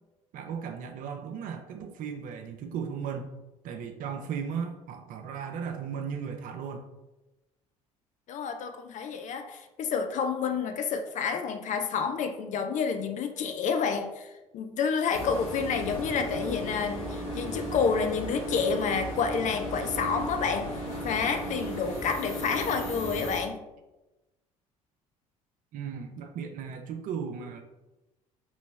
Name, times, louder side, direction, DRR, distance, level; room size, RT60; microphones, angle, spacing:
voice 1, 0.3-3.4 3.6-6.9 25.7-27.6, right 7 dB, 50° right, 4 dB, 0.5 m, -36 dB
voice 2, 8.3-23.6, left 6 dB, 45° left, 7 dB, 0.5 m, -29 dB
sound 1, 15.1-23.4, equal, 75° left, 1.2 m, -35 dB
4.0 x 3.1 x 3.2 m, 1.0 s
figure-of-eight pair, 55°, 17 cm